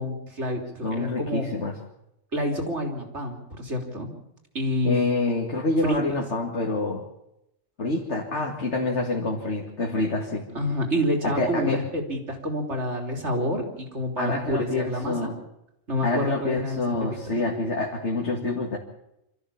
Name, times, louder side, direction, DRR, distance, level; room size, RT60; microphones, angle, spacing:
voice 1, 0.0-1.4 2.3-4.1 4.5-5.0 5.8-6.0 10.5-15.3 15.9-16.8 17.1-17.4, equal, 60° right, 3 dB, 3.7 m, -28 dB
voice 2, 0.8-1.8 4.8-7.0 7.8-10.4 11.2-11.8 14.2-15.4 16.0-18.8, left 2 dB, 60° left, 0 dB, 2.4 m, -27 dB
26.0 x 14.0 x 7.2 m, 0.85 s
omnidirectional pair, 1.3 m